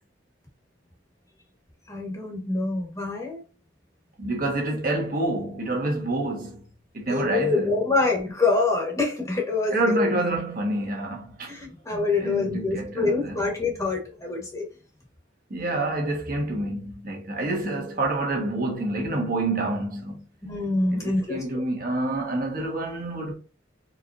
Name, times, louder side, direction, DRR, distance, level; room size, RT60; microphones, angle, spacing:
voice 1, 1.9-3.4 7.1-10.0 11.5-14.7 20.4-21.7, left 3 dB, 15° left, 1.3 m, -26 dB
voice 2, 4.2-6.6 6.9-7.7 9.7-11.6 12.2-13.4 15.5-20.2 20.9-23.3, right 2 dB, 50° right, 1.4 m, -27 dB
4.6 x 3.4 x 2.6 m
head